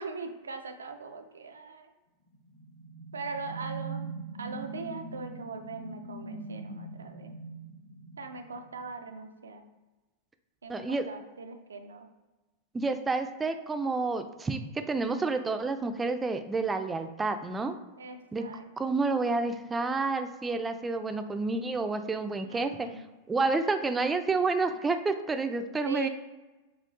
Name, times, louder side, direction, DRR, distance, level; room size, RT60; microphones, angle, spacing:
voice 1, 0.0-1.9 3.1-7.4 8.2-9.7 10.6-12.1 18.0-18.7 22.4-23.1 25.9-26.1, right 4 dB, 85° right, 7 dB, 0.4 m, -41 dB
sound 1, 2.3-8.9, right 3 dB, 50° left, 0.8 m, -42 dB
voice 2, 10.7-11.0 12.7-17.8 18.3-18.4 18.8-23.0 23.3-26.1, right 3 dB, 15° right, 8 dB, 0.4 m, -29 dB
5.7 x 2.4 x 2.6 m, 1.1 s
hypercardioid pair, 95°, 0 cm